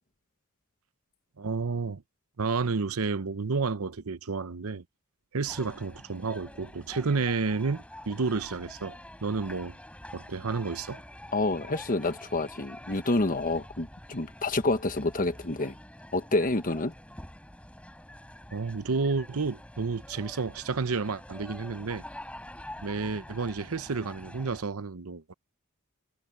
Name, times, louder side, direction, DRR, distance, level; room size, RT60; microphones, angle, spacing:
voice 1, 1.4-2.0 2.4-4.8 5.3-9.8 10.1-11.0 18.5-22.0 22.8-25.3, right 4 dB, 80° right, 0.8 m, -31 dB
sound 1, 5.5-24.6, left 1 dB, 5° left, 4.5 m, -47 dB
voice 2, 11.3-15.7 16.1-16.9, left 2 dB, 40° left, 1.3 m, -28 dB
head